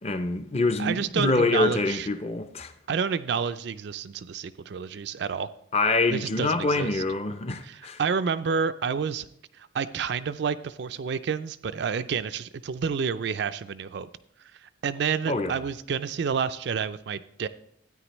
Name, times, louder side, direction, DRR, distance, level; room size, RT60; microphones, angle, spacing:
voice 1, 0.0-2.7 5.7-8.0 15.3-15.6, left 3 dB, 30° left, 0.5 m, -25 dB
voice 2, 0.8-2.1 2.9-5.5 6.1-7.0 7.6-9.3 9.6-14.1 14.6-17.5, right 6 dB, 55° right, 0.4 m, -29 dB
13.0 x 9.3 x 3.0 m
head